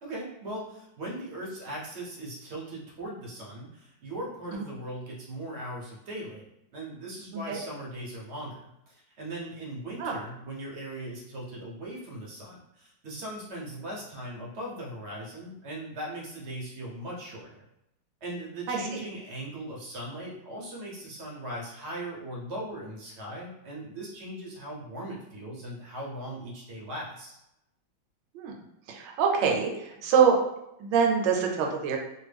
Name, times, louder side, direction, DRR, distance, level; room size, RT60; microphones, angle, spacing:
voice 1, 0.0-6.5 6.7-8.6 8.9-17.6 18.2-27.4, right 1 dB, 55° right, -3 dB, 0.7 m, -39 dB
voice 2, 18.7-19.0 28.3-28.5 28.9-30.4 30.8-32.0, right 6 dB, 75° right, 1 dB, 1.2 m, -25 dB
3.1 x 2.2 x 3.3 m, 0.84 s
omnidirectional pair, 2.0 m